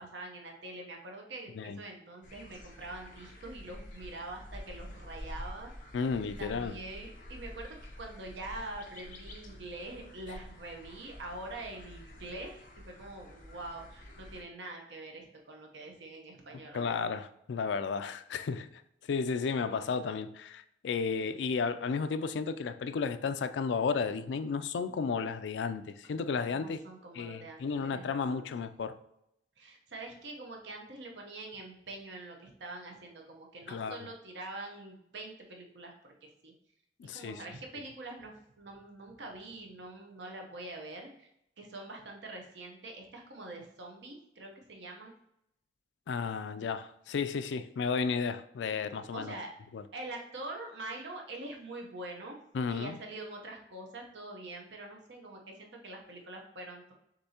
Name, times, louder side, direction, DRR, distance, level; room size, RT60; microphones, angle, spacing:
voice 1, 0.0-5.7 6.4-17.1 26.5-28.5 29.6-35.9 36.4-36.5 37.1-41.3 41.6-45.1 49.1-49.5 49.9-52.4 52.7-56.9, right 2 dB, 80° right, 0.9 m, -44 dB
Lakeside Sounds, 2.2-14.4, left 1 dB, 50° left, 0.8 m, -48 dB
voice 2, 5.9-6.7 16.7-18.8 19.1-26.8 27.1-29.0 33.7-34.1 37.0-37.4 46.1-49.3 49.7-49.8 52.5-53.0, left 5 dB, 80° left, 0.3 m, -33 dB
6.6 x 2.7 x 2.8 m
head